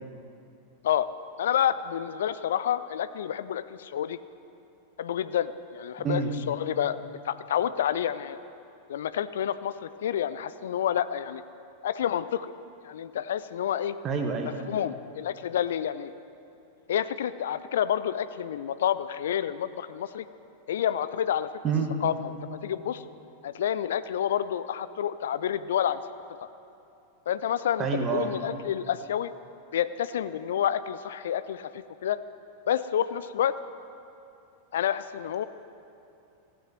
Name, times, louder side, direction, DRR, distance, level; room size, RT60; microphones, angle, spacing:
voice 1, 1.4-4.2 5.0-6.2 6.5-7.0 7.2-8.4 8.9-11.4 11.8-12.5 12.8-13.9 14.4-16.1 16.9-20.2 20.7-21.5 22.0-23.0 23.4-26.0 26.4-26.5 27.3-29.3 29.7-32.2 32.7-33.5 34.7-35.4, left 10 dB, 60° left, 14 dB, 0.4 m, -29 dB
voice 2, 6.0-6.3 14.0-14.5 21.6-22.0 27.8-28.3, right 5 dB, 30° right, 4 dB, 1.5 m, -27 dB
15.5 x 8.8 x 6.0 m, 2.7 s
figure-of-eight pair, 90°, 0 cm